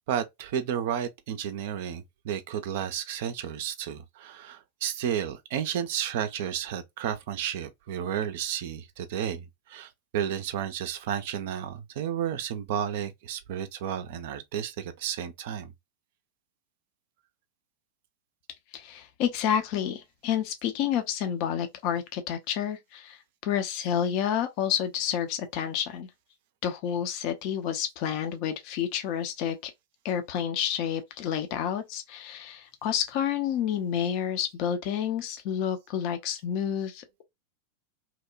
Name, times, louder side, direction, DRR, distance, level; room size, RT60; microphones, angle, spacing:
voice 1, 0.1-15.7, right 9 dB, 50° right, 0.4 m, -32 dB
voice 2, 18.7-26.1 26.6-29.7 30.0-37.2, left 9 dB, 45° left, 0.5 m, -29 dB
2.8 x 2.1 x 2.3 m
figure-of-eight pair, 90°, 0 cm